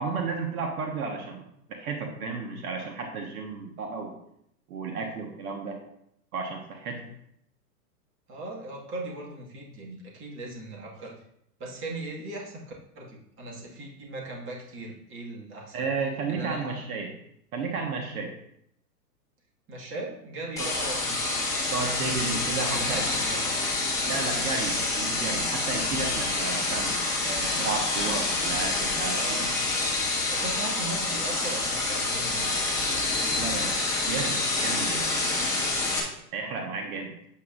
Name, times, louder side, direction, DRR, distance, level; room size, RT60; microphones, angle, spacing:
voice 1, 0.0-1.4 1.7-4.2 4.7-5.8 6.3-7.1 15.7-17.1 17.5-18.3 20.6-20.7 21.7-23.0 24.0-26.9 27.2-29.5 29.8-29.9 33.3-33.7 34.1-35.1 36.3-37.1, right 4 dB, 60° right, 2 dB, 1.6 m, -33 dB
voice 2, 8.3-11.2 11.6-12.6 13.0-15.9 16.3-16.8 19.7-21.6 22.5-23.7 29.1-29.5 30.3-32.5, right 2 dB, 25° right, -2 dB, 2.0 m, -38 dB
sound 1, 20.6-36.0, left 2 dB, 5° left, 1.6 m, -27 dB
8.2 x 8.1 x 2.6 m, 0.73 s
hypercardioid pair, 130°, 48 cm